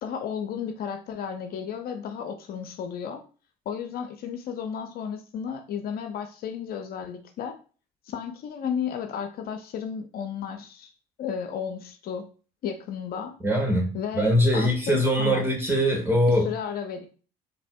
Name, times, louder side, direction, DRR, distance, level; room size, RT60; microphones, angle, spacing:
voice 1, 0.0-3.2 3.7-7.6 8.1-10.9 11.2-12.3 12.6-13.3 13.9-15.5 16.3-17.1, left 7 dB, 55° left, 0.5 m, -33 dB
voice 2, 13.4-16.4, equal, 15° right, 1.6 m, -22 dB
4.1 x 2.7 x 2.3 m
hypercardioid pair, 65°, 18 cm